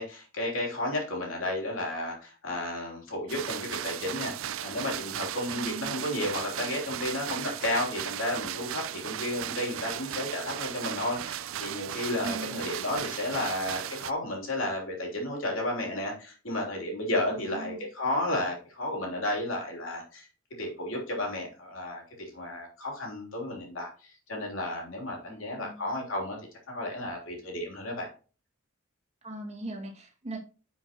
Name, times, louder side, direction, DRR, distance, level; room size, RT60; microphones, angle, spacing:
voice 1, 0.0-20.3 20.6-26.4 26.7-28.1, left 1 dB, 70° left, 0 dB, 3.2 m, -33 dB
sound 1, 3.3-14.1, right 11 dB, 70° right, 0.4 m, -36 dB
voice 2, 5.5-6.0 12.2-12.7 17.3-17.8 25.3-25.8 29.2-30.4, right 2 dB, 35° right, 1 dB, 2.1 m, -40 dB
10.5 x 5.7 x 2.9 m, 0.37 s
head